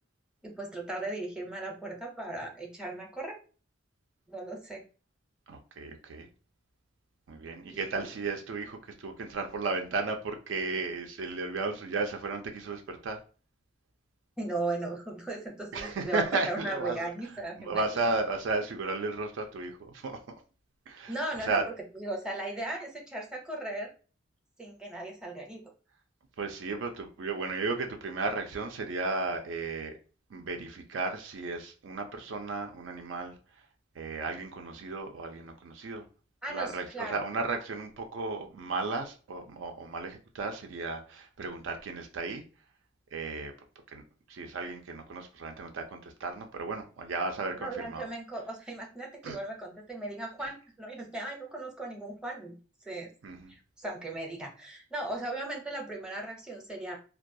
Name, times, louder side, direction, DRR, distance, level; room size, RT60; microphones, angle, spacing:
voice 1, 0.4-3.4 4.3-4.8 7.7-8.1 14.4-18.1 21.1-21.6 21.9-23.9 24.6-25.6 36.4-37.2 47.6-52.5 52.8-53.1 53.5-57.0, right 2 dB, 5° right, 0.6 m, -37 dB
voice 2, 5.5-6.3 7.3-13.2 15.7-17.0 17.6-20.2 20.9-21.6 26.4-30.0 30.3-33.4 34.0-36.0 36.5-42.4 43.1-43.5 43.9-44.0 44.3-48.1 49.2-49.4 53.2-53.5, right 3 dB, 70° right, 0.4 m, -34 dB
2.2 x 2.2 x 2.6 m
head